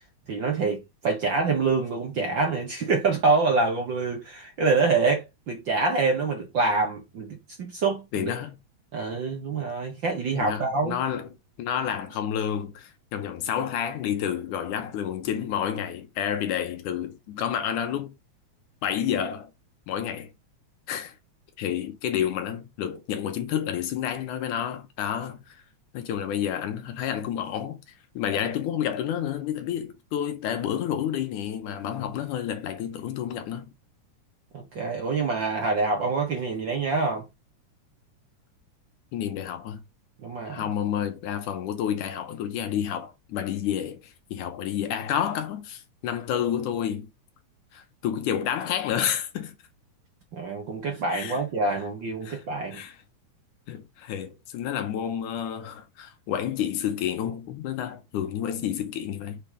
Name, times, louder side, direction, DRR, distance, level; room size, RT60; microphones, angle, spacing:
voice 1, 0.3-8.3 8.9-11.0 34.5-37.2 40.2-40.6 50.3-52.8, right 4 dB, 55° right, 1.4 m, -26 dB
voice 2, 8.1-8.6 10.3-11.3 11.6-18.1 18.8-19.5 19.9-20.3 20.9-21.1 21.6-25.5 25.9-27.8 28.2-33.7 39.1-39.8 40.5-44.0 44.3-47.1 47.7-49.6 51.1-51.4 52.2-52.4 52.7-53.0 53.7-59.4, left 9 dB, 85° left, 2.6 m, -30 dB
6.5 x 3.5 x 5.8 m
omnidirectional pair, 3.6 m